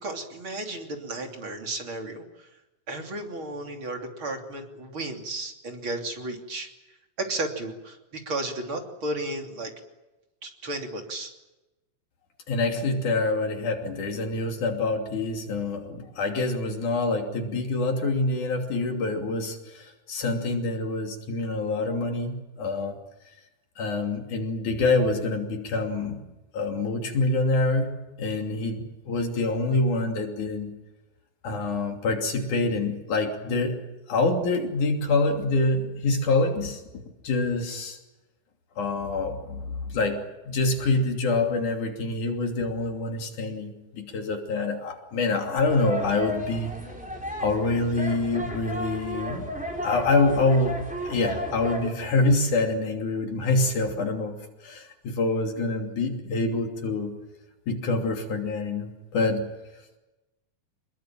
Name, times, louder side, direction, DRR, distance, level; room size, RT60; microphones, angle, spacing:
voice 1, 0.0-2.2 2.9-6.7 7.2-9.7 10.4-11.3, right 2 dB, 40° right, 3 dB, 3.7 m, -33 dB
voice 2, 12.5-23.0 23.8-26.2 26.5-27.9 28.2-30.7 31.4-33.8 34.1-36.8 37.2-38.0 38.8-46.7 47.4-49.5 49.8-50.8 51.1-54.4 54.6-57.1 57.7-59.5, left 3 dB, 65° left, 3 dB, 4.4 m, -26 dB
sound 1, 45.6-51.9, equal, ahead, 3.8 m, -34 dB
27.0 x 21.5 x 9.0 m, 1.0 s
omnidirectional pair, 3.7 m